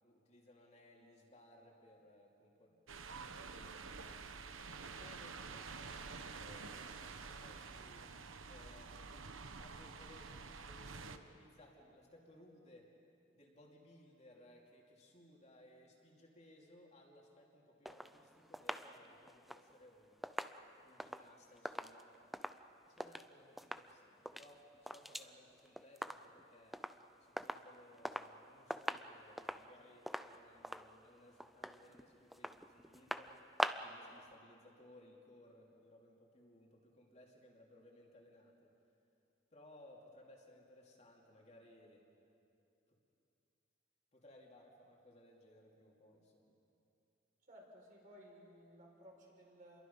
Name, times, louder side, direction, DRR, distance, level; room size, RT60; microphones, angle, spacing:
voice 1, 0.0-4.2 4.8-8.1 8.5-9.3 9.6-12.9 13.3-20.4 20.6-22.1 22.9-26.8 27.2-33.5 33.7-38.7 39.5-42.1 42.9-43.0 44.1-46.6, left 1 dB, 35° left, -1 dB, 2.6 m, -62 dB
sound 1, 2.9-11.2, right 4 dB, 80° right, 1.1 m, -49 dB
sound 2, 17.9-23.3 23.6-23.9 24.2-25.3 25.6-26.4 26.7-27.0 27.4-28.4 28.7-34.0 34.3-34.4, equal, ahead, 0.5 m, -44 dB
voice 2, 47.5-49.8, equal, 40° right, -2 dB, 5.4 m, -59 dB
29.0 x 22.5 x 5.5 m, 2.7 s
head